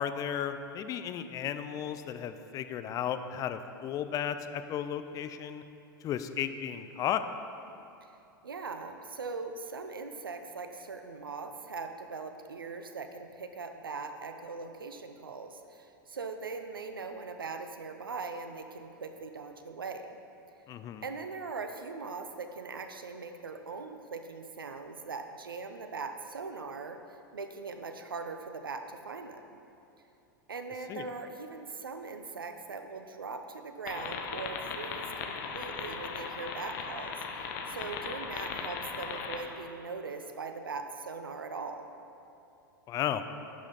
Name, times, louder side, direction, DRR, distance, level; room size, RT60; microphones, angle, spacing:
voice 1, 0.0-5.6 6.0-7.2 20.7-21.0 30.9-31.0 42.9-43.2, left 9 dB, 30° left, 10 dB, 0.4 m, -34 dB
voice 2, 8.4-20.2 21.0-27.0 27.3-29.6 30.5-41.9, right 4 dB, 85° right, 7 dB, 0.6 m, -40 dB
sound 1, 33.9-39.4, left 5 dB, 55° left, 0.8 m, -38 dB
11.0 x 5.7 x 4.0 m, 2.7 s
figure-of-eight pair, 95°, 11 cm